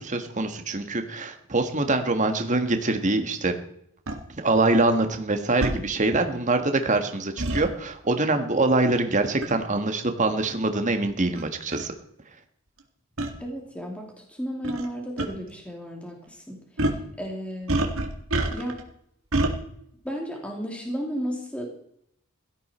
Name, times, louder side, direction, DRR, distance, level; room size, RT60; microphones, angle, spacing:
voice 1, 0.0-3.5 4.3-11.9, right 2 dB, 35° right, 6 dB, 1.6 m, -24 dB
sound 1, 4.1-4.2 5.6-5.8 7.4-7.6 9.4-9.6 10.4-10.5 11.4-11.5 11.7-11.9 13.2-13.3 14.6-14.9 15.2-15.3 16.8-17.0 17.7-18.8 19.3-19.5, right 2 dB, 65° right, 2.0 m, -26 dB
voice 2, 13.4-14.0 14.4-16.1 16.5-16.6 17.2-17.8 18.5-18.8 20.0-21.7, equal, 5° left, 0 dB, 2.8 m, -33 dB
17.0 x 13.5 x 4.4 m, 0.72 s
head